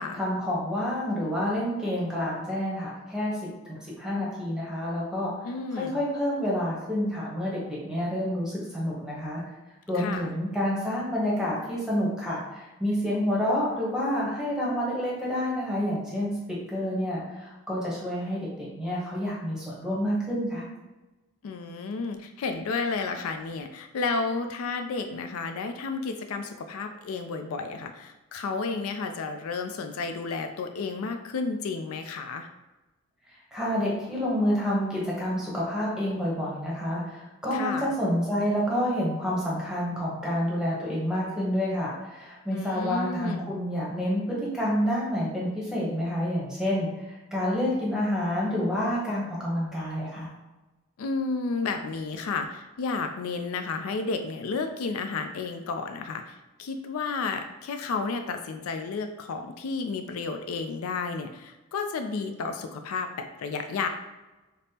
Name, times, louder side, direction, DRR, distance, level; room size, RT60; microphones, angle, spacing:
voice 1, 0.1-3.4 3.6-5.3 5.7-9.4 9.9-16.3 16.7-20.6 33.5-50.3, equal, 5° right, -6 dB, 0.8 m, -28 dB
voice 2, 5.4-6.0 9.9-10.3 21.4-32.5 37.5-37.9 42.5-43.5 51.0-63.9, left 4 dB, 85° left, 6 dB, 0.4 m, -32 dB
5.1 x 2.0 x 2.8 m, 1.1 s
head